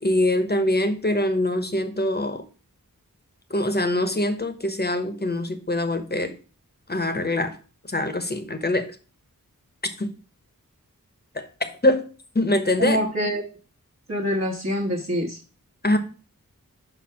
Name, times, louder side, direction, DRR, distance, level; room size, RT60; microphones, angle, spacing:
voice 1, 0.0-2.4 3.5-6.3 6.9-7.5 7.9-8.9 10.0-10.1 11.3-11.4 11.8-12.1 12.3-13.0 15.8-16.0, left 1 dB, 30° left, 8 dB, 1.0 m, -23 dB
voice 2, 12.8-13.4 14.1-15.4, equal, 40° right, -3 dB, 1.2 m, -25 dB
5.6 x 4.4 x 5.7 m, 0.37 s
wide cardioid pair, 50°, 35 cm